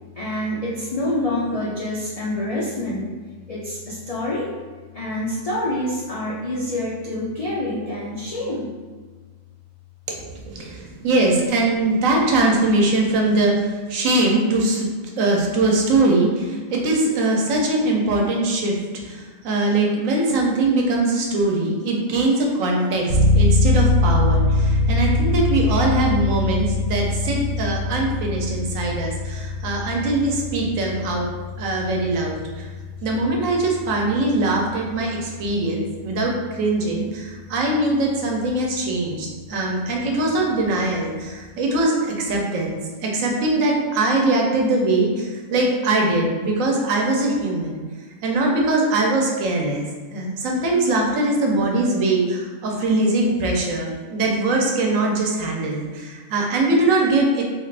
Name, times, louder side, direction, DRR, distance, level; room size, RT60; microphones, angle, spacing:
voice 1, 0.2-3.1 3.5-4.5 4.9-8.7 10.4-11.1 11.9-12.0, left 1 dB, 75° left, -6 dB, 0.3 m, -27 dB
voice 2, 10.5-14.9 15.2-18.7 19.1-31.3 31.6-32.7 33.0-47.8 48.2-57.4, right 2 dB, 80° right, -1 dB, 1.1 m, -21 dB
sound 1, 23.1-37.5, left 2 dB, 60° right, 1.0 m, -23 dB
3.4 x 2.4 x 3.3 m, 1.4 s
omnidirectional pair, 1.4 m